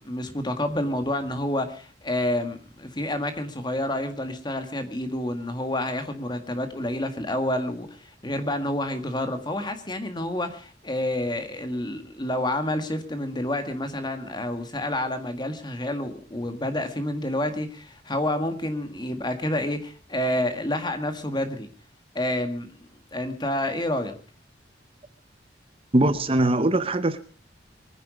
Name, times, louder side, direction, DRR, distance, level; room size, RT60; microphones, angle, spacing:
voice 1, 0.0-21.7 22.2-22.7 23.1-24.2, left 1 dB, 25° left, 1.9 m, -29 dB
voice 2, 25.9-27.2, right 1 dB, 30° right, 0.7 m, -21 dB
23.0 x 10.0 x 5.2 m
head